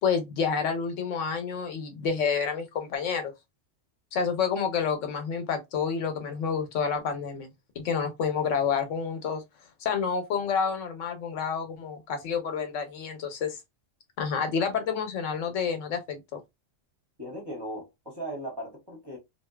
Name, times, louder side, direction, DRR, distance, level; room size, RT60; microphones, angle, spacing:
voice 1, 0.0-3.3 4.1-9.4 9.8-13.6 14.2-16.4, left 6 dB, 80° left, 1.0 m, -29 dB
voice 2, 17.2-19.2, right 1 dB, 25° right, 0.7 m, -37 dB
2.6 x 2.1 x 2.2 m
omnidirectional pair, 1.3 m